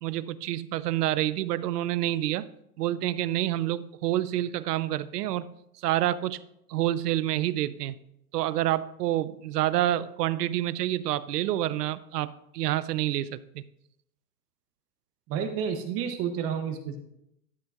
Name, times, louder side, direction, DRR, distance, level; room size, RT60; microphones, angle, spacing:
voice 1, 0.0-2.5 2.8-5.5 5.8-6.4 6.7-8.0 8.3-12.3 12.5-13.6, right 13 dB, 85° right, 17 dB, 0.6 m, -28 dB
voice 2, 15.3-17.0, right 7 dB, 30° right, 6 dB, 0.7 m, -30 dB
12.0 x 7.8 x 2.4 m, 0.80 s
hypercardioid pair, 135°, 46 cm